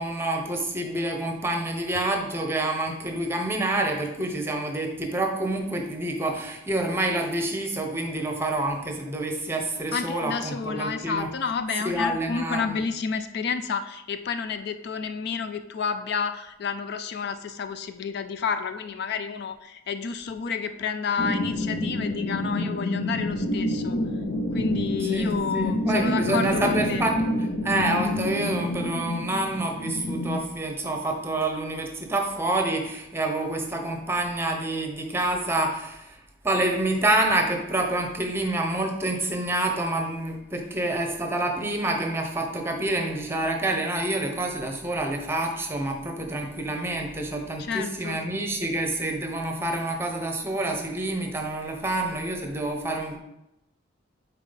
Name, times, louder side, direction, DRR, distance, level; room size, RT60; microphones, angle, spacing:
voice 1, 0.0-11.3 11.8-12.8 25.0-36.2 36.4-53.2, right 2 dB, 15° right, 2 dB, 0.9 m, -27 dB
voice 2, 9.9-24.0 24.5-27.0 47.6-48.2, left 5 dB, 60° left, 10 dB, 0.4 m, -30 dB
sound 1, 21.2-30.4, left 1 dB, 80° left, 0.8 m, -28 dB
7.2 x 4.5 x 4.0 m, 0.88 s
head